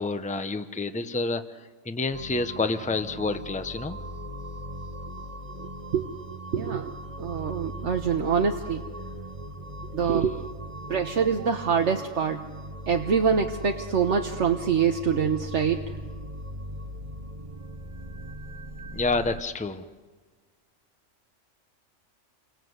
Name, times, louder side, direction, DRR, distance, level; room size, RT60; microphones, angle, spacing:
voice 1, 0.0-4.0 10.0-10.1 18.9-19.8, left 3 dB, 5° left, 9 dB, 0.9 m, -29 dB
sound 1, 2.1-19.4, right 1 dB, 30° right, 1.2 m, -39 dB
voice 2, 6.5-8.8 9.9-10.4 10.9-12.4 12.9-15.8, right 6 dB, 70° right, 4 dB, 1.5 m, -25 dB
29.0 x 24.5 x 8.0 m, 1.4 s
omnidirectional pair, 1.3 m